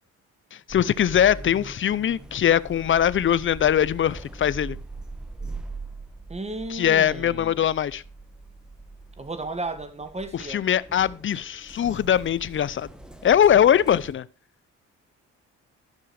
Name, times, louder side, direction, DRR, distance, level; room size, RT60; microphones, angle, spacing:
voice 1, 0.5-4.8 6.7-8.0 10.3-12.9 13.2-14.2, left 9 dB, 40° left, 0.6 m, -21 dB
sound 1, 0.7-14.1, right 2 dB, ahead, 1.2 m, -41 dB
voice 2, 6.3-7.7 9.2-10.6, right 2 dB, 20° right, 1.7 m, -34 dB
13.0 x 6.2 x 4.8 m
cardioid pair, 90°, 30 cm